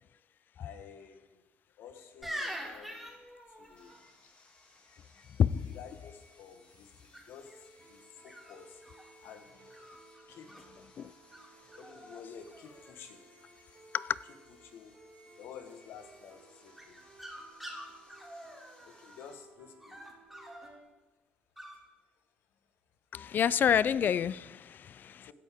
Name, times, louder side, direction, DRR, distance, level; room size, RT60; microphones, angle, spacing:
voice 1, 0.6-1.4 1.8-3.1 3.5-4.0 5.7-8.8 9.2-9.5 10.3-10.7 11.7-13.2 14.6-15.0 15.4-17.0 18.8-20.0 25.2-25.3, left 7 dB, 75° left, 7 dB, 1.3 m, -51 dB
sound 1, 2.2-4.0 7.1-7.5 8.3-9.1 9.7-10.6 11.3-11.5 11.7-12.2 12.5-13.1 16.8-19.3 19.8-20.7 21.6-21.8, equal, ahead, 3.2 m, -45 dB
Sawing, 3.8-19.3, left 2 dB, 30° left, 2.7 m, -63 dB
sound 2, 7.4-20.8, right 3 dB, 40° right, 2.6 m, -59 dB
voice 2, 23.1-25.3, left 8 dB, 55° left, 19 dB, 0.4 m, -28 dB
16.0 x 9.9 x 3.6 m, 1.2 s
supercardioid pair, 80°, 4 cm